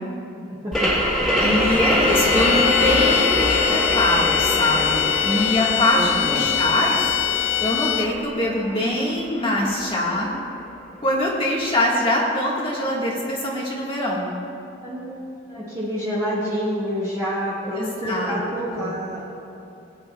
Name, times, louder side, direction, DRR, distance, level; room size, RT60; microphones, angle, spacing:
voice 1, 0.3-0.9 5.9-6.6 14.8-15.2 15.5-19.2, equal, 20° right, -9 dB, 1.6 m, -28 dB
sound 1, 0.7-10.1, left 1 dB, ahead, 2.6 m, -24 dB
voice 2, 1.4-7.1 7.6-10.3 11.0-14.3 17.7-18.3 18.7-18.9, left 1 dB, 30° left, -4 dB, 1.5 m, -23 dB
sound 2, 2.1-8.3, left 12 dB, 75° left, 0.4 m, -23 dB
19.0 x 9.6 x 2.3 m, 2.7 s
head